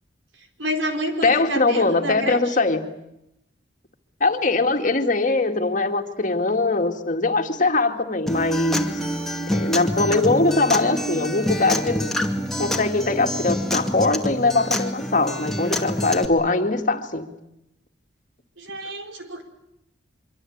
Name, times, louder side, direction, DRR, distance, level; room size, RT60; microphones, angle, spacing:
voice 1, 0.6-2.4 18.6-19.4, right 1 dB, 85° right, 5 dB, 4.7 m, -28 dB
voice 2, 1.2-2.8 4.2-8.9 9.5-12.1 12.6-17.3, left 3 dB, 40° left, 5 dB, 2.2 m, -21 dB
Acoustic guitar, 8.3-16.3, equal, ahead, 2.3 m, -26 dB
25.0 x 24.5 x 8.8 m, 0.84 s
head